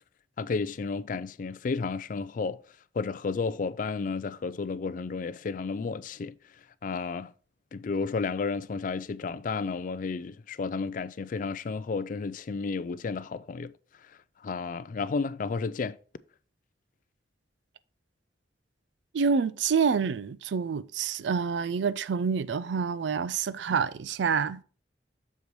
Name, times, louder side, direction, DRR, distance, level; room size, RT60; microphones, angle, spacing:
voice 1, 0.4-2.6 2.9-6.4 6.8-7.3 7.7-13.7 14.4-16.0, left 4 dB, 45° left, 0.3 m, -32 dB
voice 2, 19.1-24.6, right 6 dB, 80° right, 0.4 m, -27 dB
8.0 x 6.7 x 3.1 m
head